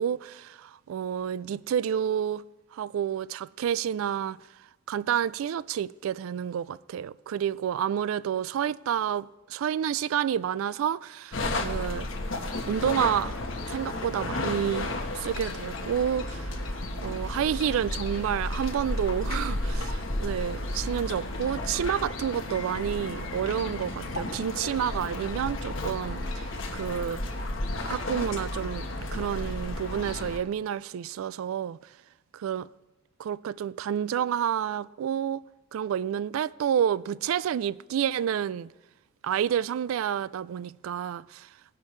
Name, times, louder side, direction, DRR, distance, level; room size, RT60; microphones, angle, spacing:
voice 1, 0.0-2.4 2.7-4.4 4.9-12.1 12.7-13.3 13.7-27.2 27.9-31.8 32.3-32.7 33.2-35.4 35.7-38.7 39.2-41.5, right 9 dB, 85° right, 0.3 m, -29 dB
sound 1, 11.3-30.4, left 1 dB, 75° left, 1.2 m, -33 dB
17.5 x 10.5 x 3.2 m
head